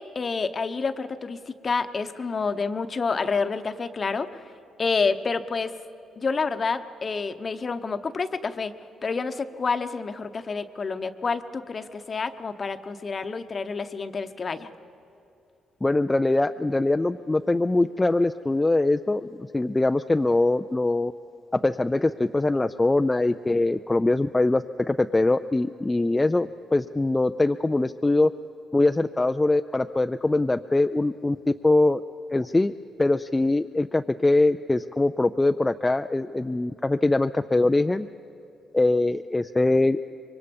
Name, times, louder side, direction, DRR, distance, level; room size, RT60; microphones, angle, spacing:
voice 1, 0.0-4.4 4.8-5.7 6.2-8.7 9.0-14.7, left 4 dB, 40° left, 10 dB, 0.9 m, -28 dB
voice 2, 15.8-21.1 21.5-28.3 28.7-32.0 32.3-32.7 33.0-38.1 38.7-40.0, left 2 dB, 15° left, 8 dB, 0.4 m, -22 dB
25.5 x 23.0 x 5.3 m, 2.8 s
cardioid pair, 90°, 0 cm